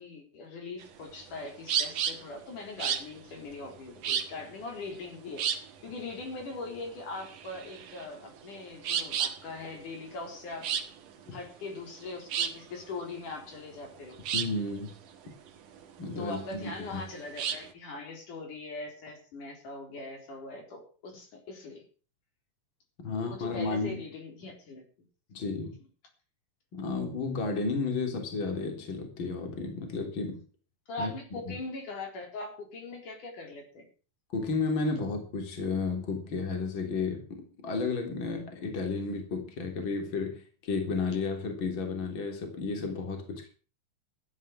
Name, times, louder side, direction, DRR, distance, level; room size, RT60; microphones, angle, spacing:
voice 1, 0.0-10.7 11.3-14.2 16.2-21.8 23.1-24.9 30.9-33.9, left 3 dB, 65° left, 3 dB, 5.4 m, -41 dB
sound 1, 0.8-17.7, right 8 dB, 70° right, 3.2 m, -34 dB
voice 2, 14.3-14.9 16.0-17.0 23.0-24.0 25.3-25.7 26.7-30.4 31.0-31.1 31.5-31.6 34.3-43.5, left 4 dB, 35° left, 4 dB, 3.9 m, -32 dB
15.0 x 10.0 x 6.3 m, 0.39 s
omnidirectional pair, 3.9 m